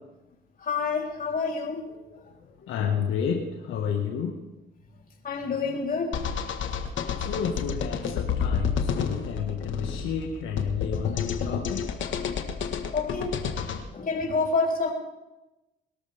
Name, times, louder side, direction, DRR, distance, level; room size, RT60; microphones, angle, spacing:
voice 1, 0.6-2.2 5.2-6.1 7.0-7.1 12.9-14.9, left 4 dB, 45° left, -1 dB, 3.7 m, -29 dB
voice 2, 2.7-4.3 7.2-11.8, left 7 dB, 90° left, 1 dB, 1.7 m, -30 dB
sound 1, 6.1-13.8, left 7 dB, 75° left, 1.6 m, -30 dB
22.0 x 13.0 x 3.6 m, 0.99 s
cardioid pair, 90°, 20 cm